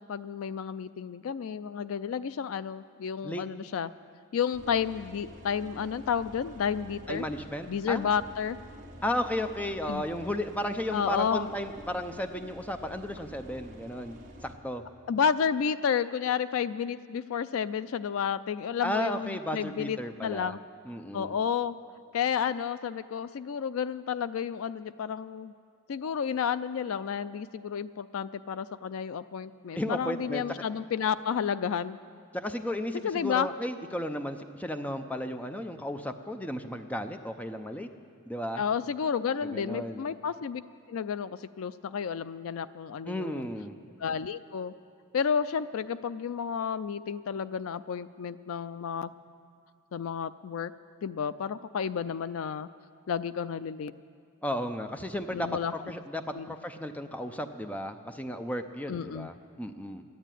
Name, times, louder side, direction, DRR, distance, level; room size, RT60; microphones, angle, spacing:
voice 1, 0.0-3.9 4.3-7.3 7.7-8.6 9.9-10.0 10.9-11.5 15.1-20.6 21.1-21.7 22.1-25.5 25.9-32.0 33.0-33.5 38.6-40.6 40.9-43.5 44.0-44.7 45.1-49.1 49.9-50.7 51.0-52.7 53.1-53.9 55.3-55.7 56.3-56.5 58.9-59.3, left 7 dB, 65° left, 15 dB, 0.4 m, -31 dB
sound 1, 4.5-14.5, right 1 dB, 35° right, 1.3 m, -49 dB
voice 2, 7.1-8.1 9.0-14.8 18.8-20.6 20.9-21.3 29.7-30.4 32.3-37.9 38.3-38.6 39.4-40.1 43.1-43.8 54.4-55.6 55.9-60.0, left 1 dB, 5° left, 7 dB, 0.5 m, -34 dB
13.0 x 10.0 x 9.1 m, 2.2 s
head